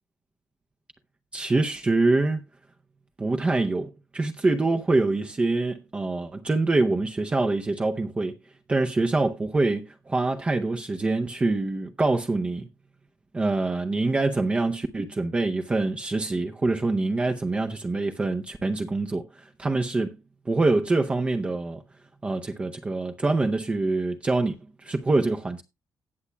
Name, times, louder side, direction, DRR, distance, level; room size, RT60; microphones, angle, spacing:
voice 1, 1.3-2.4 3.2-8.4 8.7-12.7 13.3-20.1 20.5-21.8 22.2-24.6 24.8-25.6, right 2 dB, 20° right, 0.6 m, -25 dB
18.0 x 7.2 x 2.2 m
cardioid pair, 160°, 6 cm